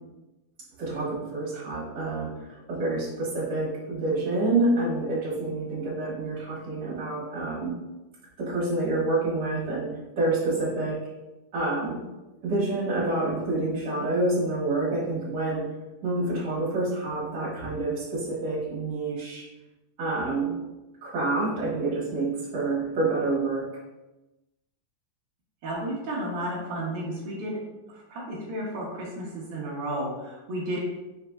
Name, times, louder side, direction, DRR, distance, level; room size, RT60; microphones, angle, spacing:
voice 1, 0.8-2.3 2.7-7.8 8.4-11.0 11.5-12.0 12.4-15.7 16.0-19.4 20.0-20.6 21.0-23.7, right 2 dB, 40° right, -7 dB, 1.6 m, -27 dB
voice 2, 25.6-27.6 28.1-30.8, right 1 dB, 85° right, -5 dB, 1.2 m, -32 dB
5.3 x 3.9 x 2.3 m, 1.0 s
omnidirectional pair, 3.7 m